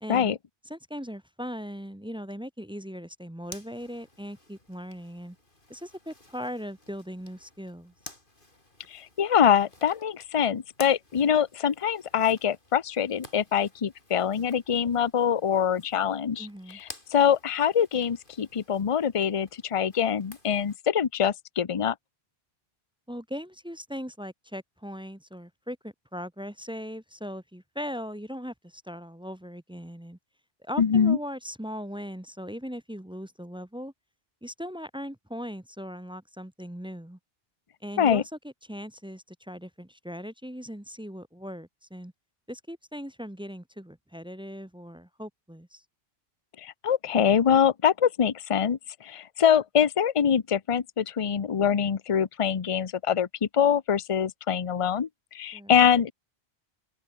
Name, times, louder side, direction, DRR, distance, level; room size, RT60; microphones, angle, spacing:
voice 1, 0.0-0.4 0.7-5.4 5.7-7.9 16.4-16.8 23.1-30.2 30.6-33.9 34.4-37.2 37.8-42.1 42.5-45.8 55.5-55.8, equal, 5° right, 0.5 m, -39 dB
Zipper (clothing), 3.4-20.8, left 1 dB, 55° left, 5.2 m, -52 dB
voice 2, 8.9-21.9 30.8-31.2 38.0-38.2 46.6-55.1 55.3-56.1, left 8 dB, 35° left, 0.7 m, -24 dB
omnidirectional pair, 1.0 m